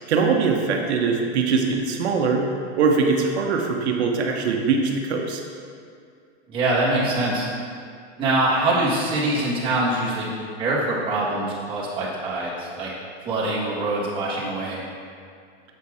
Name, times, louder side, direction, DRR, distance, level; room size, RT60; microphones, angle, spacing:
voice 1, 0.1-2.5 2.8-5.4, right 4 dB, 85° right, 2 dB, 1.0 m, -22 dB
voice 2, 6.5-7.5 8.2-10.3 10.6-12.9 13.2-14.8, right 2 dB, 15° right, -7 dB, 1.4 m, -24 dB
7.2 x 4.2 x 4.8 m, 2.2 s
supercardioid pair, 165°, 32 cm